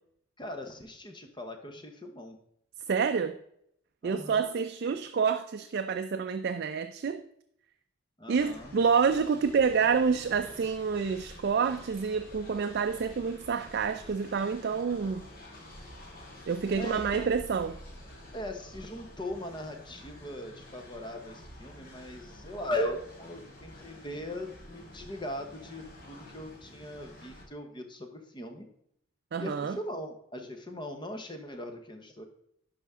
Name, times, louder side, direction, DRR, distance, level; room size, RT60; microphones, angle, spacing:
voice 1, 0.4-2.4 4.0-4.6 8.2-8.7 16.8-17.3 18.3-28.7 29.4-32.2, left 1 dB, 20° left, 5 dB, 0.9 m, -39 dB
voice 2, 2.9-3.4 4.0-7.2 8.3-15.3 16.5-17.8 29.3-29.8, right 6 dB, 50° right, 8 dB, 0.3 m, -28 dB
Train, 8.4-27.4, left 1 dB, 45° left, 1.7 m, -49 dB
11.0 x 5.1 x 3.6 m, 0.72 s
head